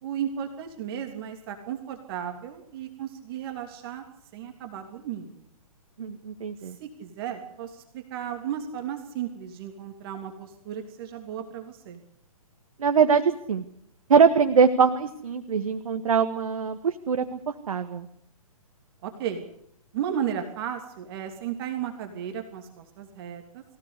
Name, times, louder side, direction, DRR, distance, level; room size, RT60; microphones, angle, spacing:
voice 1, 0.0-4.0 4.3-5.4 6.8-12.0 19.0-19.4 19.9-23.6, right 9 dB, 40° right, 5 dB, 3.1 m, -34 dB
voice 2, 6.0-6.8 12.8-13.2 13.5-13.6 14.1-17.4 17.7-18.1, right 6 dB, 65° right, 8 dB, 1.9 m, -22 dB
25.0 x 16.5 x 8.3 m, 0.73 s
figure-of-eight pair, 130°, 19 cm